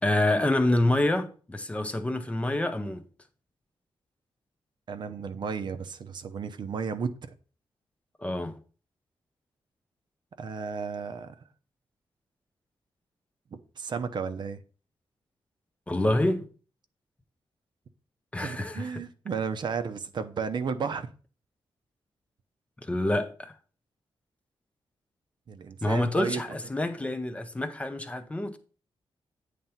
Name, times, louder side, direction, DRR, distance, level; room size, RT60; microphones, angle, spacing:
voice 1, 0.0-3.0 8.2-8.6 15.9-16.5 18.3-19.0 22.8-23.5 25.8-28.6, left 1 dB, 15° left, 0.6 m, -27 dB
voice 2, 4.9-7.1 10.4-11.3 13.8-14.6 18.4-21.1 25.5-26.4, right 6 dB, 50° right, 0.6 m, -33 dB
9.0 x 3.4 x 5.6 m
wide cardioid pair, 160°, 9 cm